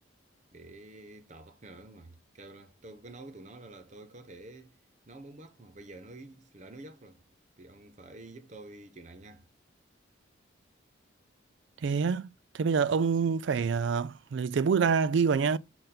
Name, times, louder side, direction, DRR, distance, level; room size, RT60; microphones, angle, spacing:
voice 1, 0.5-4.8 5.1-7.2 7.6-9.5, right 2 dB, 35° right, 0.8 m, -49 dB
voice 2, 11.8-12.3 12.5-15.6, right 5 dB, 65° right, 0.4 m, -26 dB
6.7 x 3.9 x 3.8 m
head